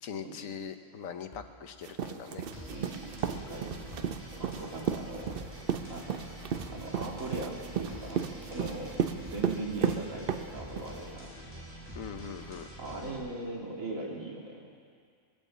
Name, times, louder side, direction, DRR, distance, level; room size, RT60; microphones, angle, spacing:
voice 1, 0.0-2.5 11.9-12.7, left 7 dB, 80° left, 8 dB, 1.3 m, -41 dB
sound 1, 1.3-5.0 5.3-9.0, left 1 dB, 30° left, 2.3 m, -55 dB
sound 2, 1.8-11.0, right 8 dB, 55° right, 0.7 m, -33 dB
sound 3, 2.5-13.2, equal, 20° right, 3.6 m, -46 dB
voice 2, 2.7-4.0 4.4-5.4 5.9-6.3 6.7-8.9 9.2-11.3 12.8-14.7, right 2 dB, 80° right, -2 dB, 2.7 m, -39 dB
21.0 x 8.7 x 7.4 m, 2.2 s
omnidirectional pair, 1.4 m